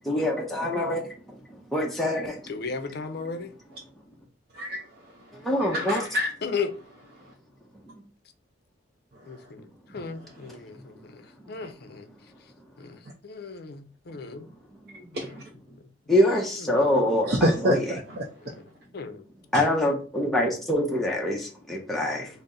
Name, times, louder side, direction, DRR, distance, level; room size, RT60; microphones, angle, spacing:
voice 1, 0.1-1.1 1.7-2.4 5.4-6.0 16.1-17.8 19.5-22.3, left 1 dB, ahead, 0.6 m, -24 dB
voice 2, 2.5-3.5 6.4-6.7 9.3-9.7 9.9-12.1 12.8-14.5 16.6-16.9 18.4-18.6 18.9-19.2 22.1-22.2, left 5 dB, 55° left, 0.5 m, -35 dB
voice 3, 4.5-4.8 5.6-6.3 10.2-10.3 11.6-11.7 15.1-15.3 17.3-18.3 19.5-19.6, equal, 50° right, 0.5 m, -27 dB
4.0 x 2.0 x 3.7 m
head